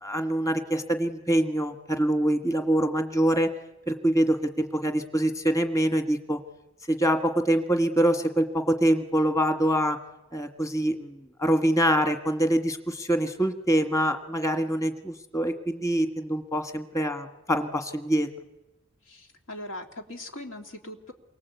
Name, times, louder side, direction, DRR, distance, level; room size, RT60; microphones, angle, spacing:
voice 1, 0.0-3.5 3.9-6.4 6.9-10.0 10.3-18.3, right 1 dB, 15° left, 6 dB, 1.6 m, -25 dB
voice 2, 19.1-21.1, left 1 dB, 90° left, 3 dB, 2.9 m, -40 dB
28.5 x 23.5 x 8.3 m, 0.97 s
head